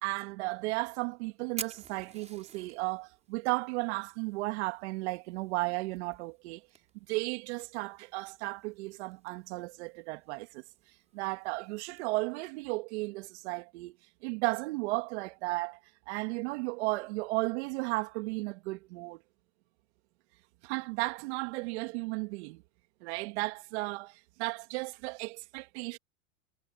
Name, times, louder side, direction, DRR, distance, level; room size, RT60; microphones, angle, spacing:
voice 1, 0.0-6.6 7.1-10.6 11.1-14.0 14.2-15.8 16.1-19.2 20.6-22.6 23.0-26.0, right 24 dB, 55° right, 2.3 m, -34 dB
Fire, 0.5-12.0, right 6 dB, 15° right, 5.7 m, -51 dB
hypercardioid pair, 130°, 40 cm